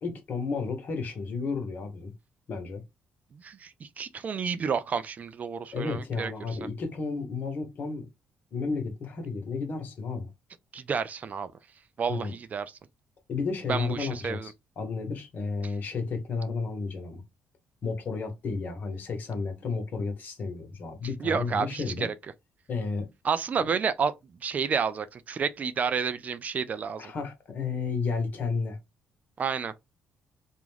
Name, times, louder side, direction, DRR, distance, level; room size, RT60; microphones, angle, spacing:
voice 1, 0.0-2.1 2.5-2.8 5.7-8.1 8.5-10.3 12.1-12.3 13.3-17.2 17.8-22.1 22.7-23.0 23.6-23.7 27.0-28.8, left 4 dB, 60° left, 0.9 m, -32 dB
voice 2, 3.4-6.3 10.7-11.5 12.0-12.7 13.7-14.5 21.2-22.1 23.2-24.1 24.4-27.1 29.4-29.7, right 6 dB, 45° right, 0.3 m, -30 dB
2.4 x 2.1 x 3.1 m
supercardioid pair, 70°, 4 cm